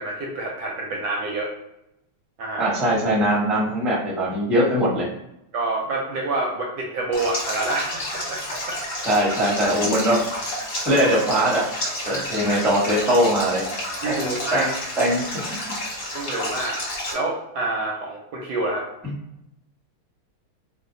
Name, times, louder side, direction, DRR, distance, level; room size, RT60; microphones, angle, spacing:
voice 1, 0.0-1.5 2.4-2.7 5.5-8.8 12.1-12.6 14.0-14.7 16.1-16.8 17.1-18.9, right 2 dB, 70° right, -1 dB, 1.0 m, -28 dB
voice 2, 2.6-5.1 9.0-10.2 10.8-11.6 12.0-13.6 14.1-14.7 15.0-15.5 19.0-19.1, equal, ahead, -6 dB, 0.4 m, -21 dB
Stream, 7.1-17.1, left 1 dB, 45° left, 1.2 m, -30 dB
3.2 x 2.1 x 3.7 m, 0.84 s
omnidirectional pair, 2.2 m